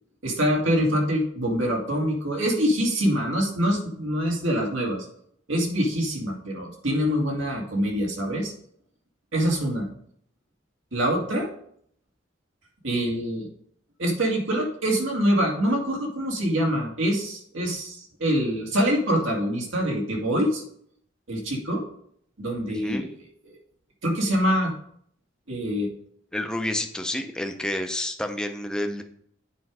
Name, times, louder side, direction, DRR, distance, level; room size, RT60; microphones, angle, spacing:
voice 1, 0.2-5.0 5.5-8.5 9.3-9.9 10.9-11.5 12.8-13.5 14.0-20.6 21.3-21.8 22.4-23.1 23.4-23.6 24.0-24.7 25.5-25.9, equal, 85° right, -1 dB, 2.3 m, -25 dB
voice 2, 22.7-23.1 26.3-29.0, left 1 dB, 5° left, 5 dB, 0.6 m, -29 dB
8.2 x 5.2 x 4.8 m, 0.67 s
head